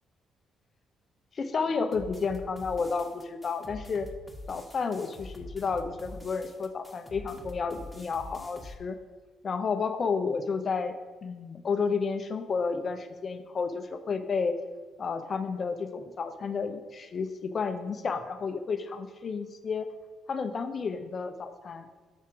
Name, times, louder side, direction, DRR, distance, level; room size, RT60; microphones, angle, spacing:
voice 1, 1.3-4.1 4.5-9.0 9.4-10.9 11.2-14.6 15.0-19.9 20.3-21.9, left 5 dB, 50° left, 8 dB, 0.7 m, -31 dB
sound 1, 1.9-8.7, left 2 dB, ahead, 1.4 m, -45 dB
7.2 x 4.3 x 4.8 m, 1.3 s
hypercardioid pair, 50°, 0 cm